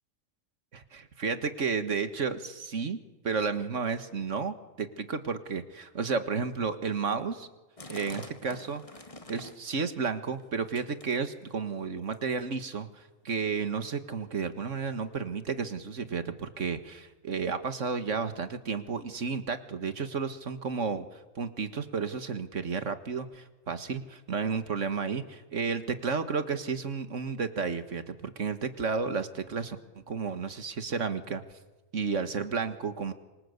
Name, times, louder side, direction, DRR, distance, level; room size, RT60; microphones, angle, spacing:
voice 1, 0.7-3.0 3.2-7.5 7.9-8.8 9.3-21.1 21.4-29.8 30.1-31.4 31.9-33.1, right 5 dB, 60° right, 10 dB, 1.9 m, -32 dB
sound 1, 7.8-9.7 10.1-10.5 10.7-11.6 12.1-12.5 13.2-13.3 13.5-13.6 14.3-14.4 15.1-15.2, left 2 dB, 25° left, 1.9 m, -46 dB
26.5 x 25.5 x 8.2 m, 1.1 s
omnidirectional pair, 1.5 m